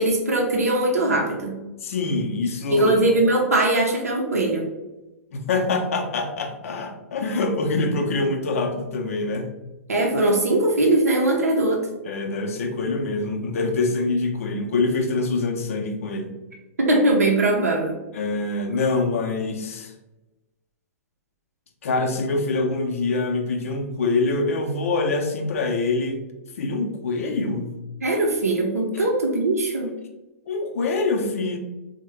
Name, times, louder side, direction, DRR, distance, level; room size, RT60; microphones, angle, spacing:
voice 1, 0.0-1.6 2.7-4.7 9.9-11.8 16.8-18.0 28.0-29.9, right 2 dB, 85° right, 0 dB, 0.5 m, -20 dB
voice 2, 1.8-2.9 5.3-9.5 12.0-16.3 18.1-19.9 21.8-26.2 26.6-27.8 28.9-29.0 30.5-31.6, left 3 dB, 65° left, 4 dB, 0.6 m, -25 dB
3.6 x 2.1 x 3.1 m, 1.1 s
figure-of-eight pair, 105°, 8 cm